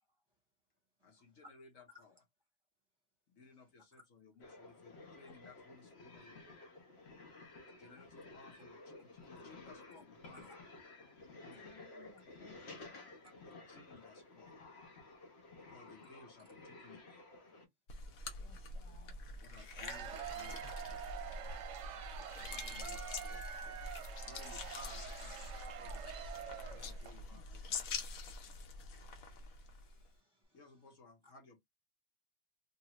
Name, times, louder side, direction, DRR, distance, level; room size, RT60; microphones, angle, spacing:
voice 1, 1.0-2.2 3.3-6.6 7.7-10.7 11.4-11.8 13.4-14.7 15.6-17.2 19.4-21.3 22.5-23.8 24.2-26.2 26.5-27.9 30.5-31.6, left 3 dB, 70° left, 1.3 m, -60 dB
sound 1, 4.4-17.7, left 2 dB, 55° left, 1.1 m, -54 dB
voice 2, 11.4-13.1 18.4-19.2, left 5 dB, 40° left, 0.5 m, -62 dB
sound 2, 17.9-30.1, left 3 dB, 90° left, 1.2 m, -45 dB
voice 3, 18.2-18.6 28.9-30.6, left 2 dB, 20° right, 1.1 m, -65 dB
Cheering / Applause / Crowd, 19.6-27.2, right 9 dB, 70° right, 0.9 m, -47 dB
2.7 x 2.7 x 2.9 m
omnidirectional pair, 1.4 m